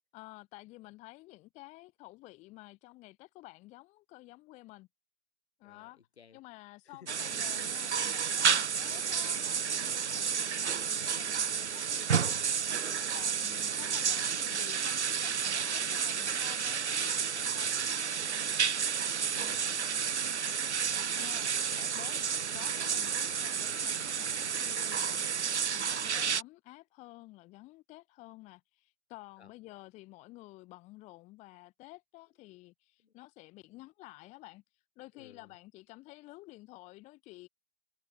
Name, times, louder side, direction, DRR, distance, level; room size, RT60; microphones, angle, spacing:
voice 1, 0.1-4.9 5.6-6.0 6.3-12.4 13.1-17.8 19.3-19.6 21.2-21.5 21.9-22.2 22.5-34.6 35.0-37.5, left 20 dB, 20° left, 0.7 m, -52 dB
sound 1, 7.1-26.4, right 7 dB, 90° right, 0.6 m, -31 dB
voice 2, 13.4-14.0 19.1-20.3 20.9-22.3 24.7-25.0 29.4-29.5 33.0-33.1 35.1-35.5, left 7 dB, 70° left, 4.3 m, -57 dB
figure-of-eight pair, 115°, 33 cm